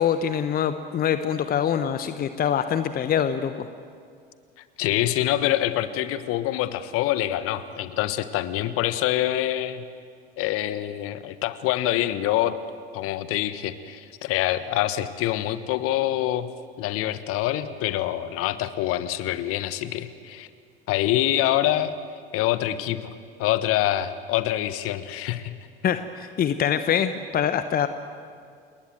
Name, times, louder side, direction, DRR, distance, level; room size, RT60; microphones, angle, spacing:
voice 1, 0.0-3.7 25.8-27.9, left 8 dB, 30° left, 11 dB, 1.0 m, -24 dB
voice 2, 4.8-9.8 10.4-12.5 12.9-16.5 16.8-20.5 20.9-21.9 22.3-25.5, left 13 dB, 45° left, 13 dB, 1.4 m, -25 dB
29.0 x 20.5 x 7.9 m, 2.2 s
figure-of-eight pair, 70°, 30 cm